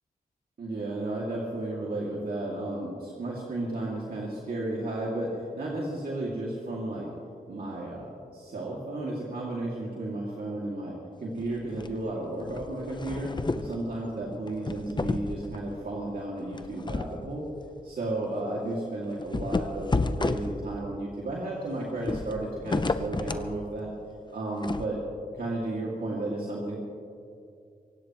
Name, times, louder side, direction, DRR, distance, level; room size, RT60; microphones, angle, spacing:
voice 1, 0.6-7.1 7.5-17.5 17.8-23.9 24.3-25.0 25.3-26.8, right 2 dB, 75° right, -4 dB, 2.5 m, -33 dB
sound 1, 11.4-12.0 12.4-13.8 14.5-15.7 16.5-17.2 17.6-17.7 18.1-18.2 19.2-20.9 22.0-23.5 24.6-24.9, left 3 dB, 30° left, 0.7 m, -31 dB
24.0 x 17.0 x 3.1 m, 2.5 s
cardioid pair, 70°, 16 cm